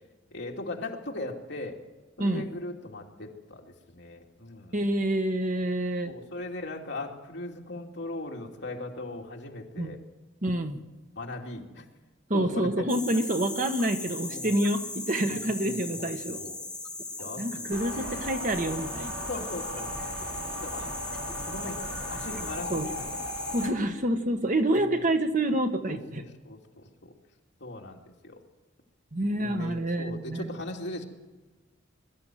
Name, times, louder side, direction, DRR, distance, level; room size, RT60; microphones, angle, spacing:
voice 1, 0.3-1.8 2.2-4.7 6.0-10.0 11.2-11.8 12.3-12.9 14.3-14.6 15.3-16.6 17.2-18.3 19.3-20.9 21.5-21.8 22.1-23.2 24.7-24.8 25.9-27.1 27.6-28.4 29.4-31.1, left 2 dB, 60° left, 0 dB, 2.8 m, -39 dB
voice 2, 4.7-6.1 9.8-10.0 10.4-10.8 12.3-16.4 17.4-19.2 22.7-22.9 23.5-26.2 29.1-30.6, right 1 dB, 40° right, 6 dB, 1.4 m, -27 dB
sound 1, 12.9-23.7, left 2 dB, 5° left, 1.6 m, -38 dB
sound 2, 17.7-23.7, equal, 65° right, 6.1 m, -37 dB
22.0 x 13.5 x 9.2 m, 1.2 s
head